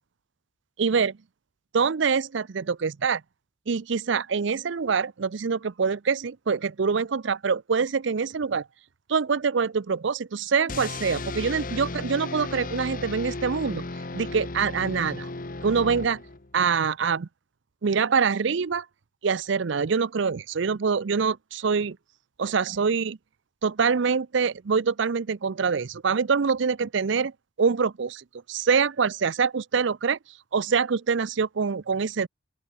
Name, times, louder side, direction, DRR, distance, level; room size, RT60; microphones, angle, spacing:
voice 1, 0.8-1.1 1.7-3.2 3.7-8.7 9.1-13.8 14.1-15.3 15.6-16.2 16.5-17.3 17.8-18.9 19.2-22.0 22.4-23.2 23.6-27.3 27.6-30.2 30.5-32.3, right 5 dB, 65° right, 0.5 m, -25 dB
sound 1, 10.7-16.6, left 2 dB, 40° left, 1.0 m, -35 dB
open air
head